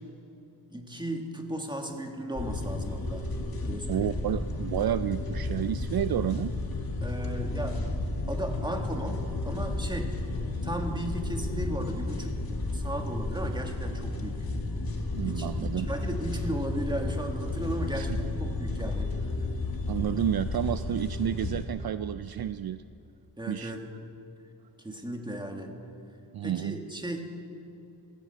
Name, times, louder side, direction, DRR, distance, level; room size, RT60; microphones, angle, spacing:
voice 1, 0.7-3.3 3.6-4.1 7.0-8.0 8.3-10.2 10.6-12.4 12.7-14.5 15.2-19.1 23.4-23.8 24.8-25.7 26.4-27.2, right 1 dB, 10° right, 3 dB, 1.9 m, -36 dB
sound 1, 2.3-21.7, left 2 dB, 55° left, 1.9 m, -32 dB
voice 2, 3.9-6.5 15.2-15.9 17.9-18.1 19.9-22.8 23.5-23.7 26.3-26.8, right 10 dB, 60° right, 13 dB, 0.5 m, -30 dB
sound 2, 4.7-12.0, left 9 dB, 40° left, 3.1 m, -45 dB
16.5 x 10.0 x 8.1 m, 2.9 s
wide cardioid pair, 80°, 42 cm